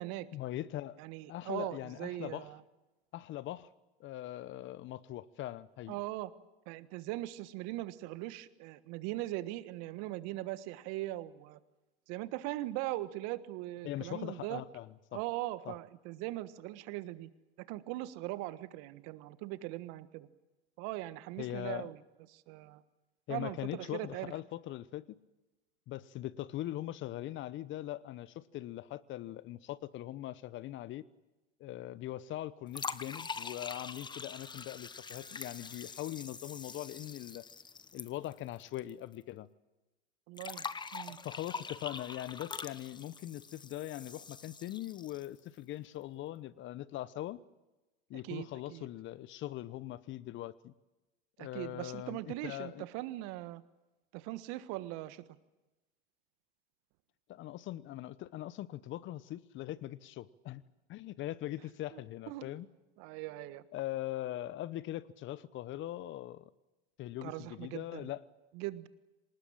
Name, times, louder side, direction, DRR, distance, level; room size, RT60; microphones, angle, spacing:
voice 1, 0.3-1.0 1.3-2.5 3.1-3.7 4.0-6.0 13.8-15.2 15.7-15.8 21.4-21.9 23.3-25.2 25.9-31.1 31.6-37.4 37.9-39.5 41.2-47.4 48.1-50.7 51.4-52.9 57.3-60.6 60.9-62.7 63.7-66.5 67.0-68.2, left 14 dB, 35° left, 18 dB, 0.9 m, -41 dB
voice 2, 1.0-2.6 5.9-6.3 6.6-11.6 12.1-14.6 15.1-17.3 17.7-20.3 20.8-22.0 22.3-22.8 23.3-24.3 40.3-40.7 40.9-41.2 48.2-48.9 51.4-53.6 54.1-55.2 61.9-62.0 62.3-62.5 63.0-63.6 67.2-68.1 68.5-68.9, right 17 dB, 50° right, 13 dB, 1.5 m, -40 dB
sound 1, 32.7-38.9 39.1-39.2 40.4-45.4, left 5 dB, 15° left, 1.1 m, -44 dB
26.0 x 19.5 x 8.8 m, 1.1 s
hypercardioid pair, 100°, 32 cm